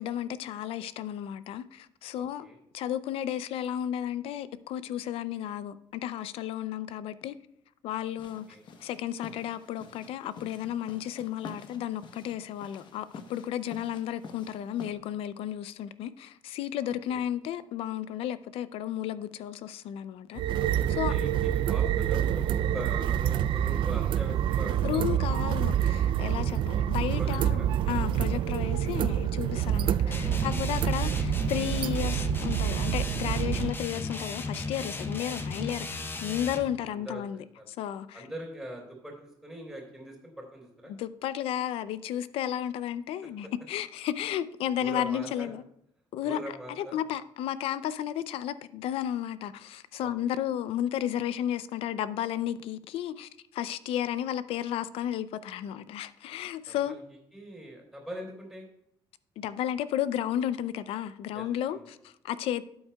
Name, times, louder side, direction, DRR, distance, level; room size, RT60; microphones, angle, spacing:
voice 1, 0.0-2.5 2.7-7.4 7.8-8.4 8.8-20.4 20.9-21.1 24.8-37.4 37.7-38.3 40.9-45.6 46.1-46.4 46.8-57.0 59.4-62.7, left 11 dB, 80° left, 0.5 m, -33 dB
voice 2, 2.1-2.6 8.5-8.6 16.8-17.2 20.9-25.0 27.1-27.7 30.2-30.8 35.0-35.1 36.9-37.2 37.6-37.7 38.1-40.9 44.7-45.5 46.2-47.0 50.0-50.4 56.7-57.0 57.3-58.7 61.3-61.9, equal, ahead, 3.4 m, -42 dB
sound 1, 8.2-14.9, left 4 dB, 55° left, 1.0 m, -48 dB
sound 2, 20.3-33.7, right 10 dB, 60° right, 0.3 m, -27 dB
sound 3, 30.1-36.7, left 3 dB, 25° left, 0.7 m, -35 dB
12.5 x 8.6 x 2.3 m
cardioid pair, 130°, 10 cm